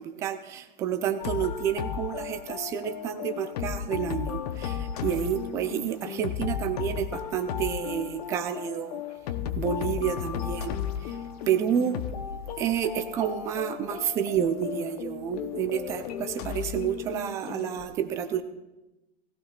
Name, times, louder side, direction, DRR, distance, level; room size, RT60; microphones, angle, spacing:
voice 1, 0.0-9.0 9.5-11.2 11.5-18.4, right 9 dB, 10° right, 9 dB, 0.4 m, -30 dB
sound 1, 1.2-17.9, left 9 dB, 40° left, 0.8 m, -35 dB
19.5 x 15.0 x 2.4 m, 1.0 s
hypercardioid pair, 125°, 31 cm